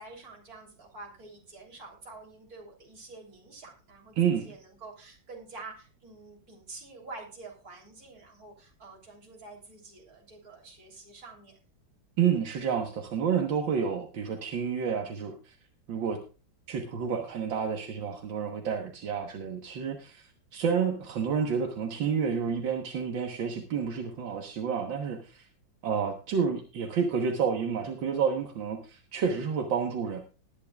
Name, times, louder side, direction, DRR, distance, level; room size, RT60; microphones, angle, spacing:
voice 1, 0.0-11.6, right 3 dB, 50° right, 1 dB, 3.7 m, -47 dB
voice 2, 4.2-4.5 12.2-15.6 15.9-16.2 16.7-25.5 25.8-30.2, right 6 dB, 80° right, 2 dB, 2.0 m, -29 dB
19.5 x 10.5 x 2.4 m, 0.34 s
omnidirectional pair, 2.1 m